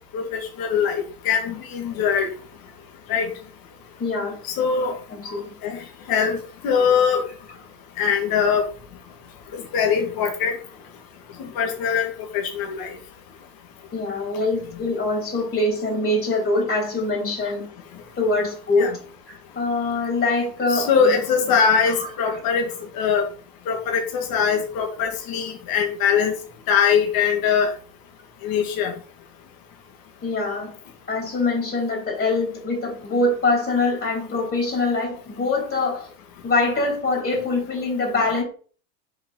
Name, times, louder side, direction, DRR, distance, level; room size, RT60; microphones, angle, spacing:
voice 1, 0.1-2.3 3.1-3.3 4.4-5.0 5.6-7.2 8.0-8.6 9.5-10.6 11.4-12.9 18.8-18.9 20.7-22.7 22.9-23.3 23.7-26.3 26.7-27.7 28.4-28.9, left 6 dB, 45° left, 3 dB, 2.1 m, -22 dB
voice 2, 4.0-4.4 5.1-5.5 13.9-17.7 18.2-18.9 19.3-21.2 21.5-21.6 21.9-22.4 30.2-30.7 31.1-36.1 36.4-38.4, left 2 dB, 25° left, 1 dB, 3.7 m, -24 dB
7.5 x 5.0 x 4.2 m, 0.41 s
hypercardioid pair, 90°, 49 cm